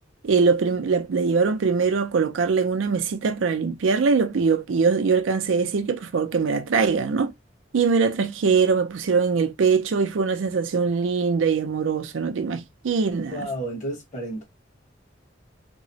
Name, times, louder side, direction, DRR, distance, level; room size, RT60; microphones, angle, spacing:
voice 1, 0.2-7.3 7.7-13.5, right 5 dB, 85° right, 0.4 m, -22 dB
voice 2, 13.3-14.4, right 1 dB, 40° left, 1.2 m, -31 dB
2.9 x 2.0 x 2.7 m
head